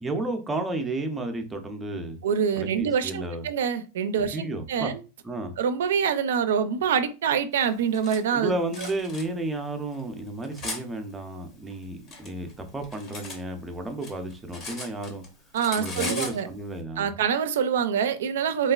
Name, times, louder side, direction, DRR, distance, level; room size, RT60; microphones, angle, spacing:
voice 1, 0.0-2.2 2.5-3.5 4.3-4.9 5.2-5.5 8.3-15.2 15.8-17.1, right 2 dB, 10° right, 0.4 m, -32 dB
voice 2, 2.2-5.0 5.6-8.5 15.5-16.5 17.0-18.7, right 7 dB, 90° right, 0.3 m, -25 dB
Cutlery silverware, 7.6-8.2 8.7-9.2 9.9-10.8 11.7-13.4 13.7-15.3 15.5-16.4, left 3 dB, 30° left, 0.7 m, -37 dB
3.0 x 2.3 x 2.3 m
supercardioid pair, 155°, 0 cm